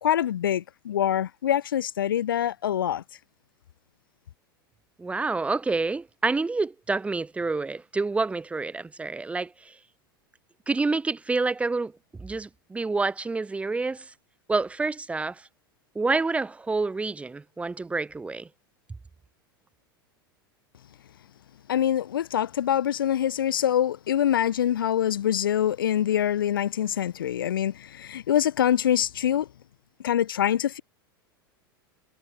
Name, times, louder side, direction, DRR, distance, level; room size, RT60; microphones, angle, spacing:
voice 1, 0.0-3.0 21.7-29.5 30.0-30.8, left 10 dB, 65° left, 0.8 m, -25 dB
voice 2, 5.0-9.7 10.7-11.9 12.2-14.1 14.5-15.4 15.9-18.5, right 3 dB, 10° right, 0.8 m, -28 dB
figure-of-eight pair, 85°, 12 cm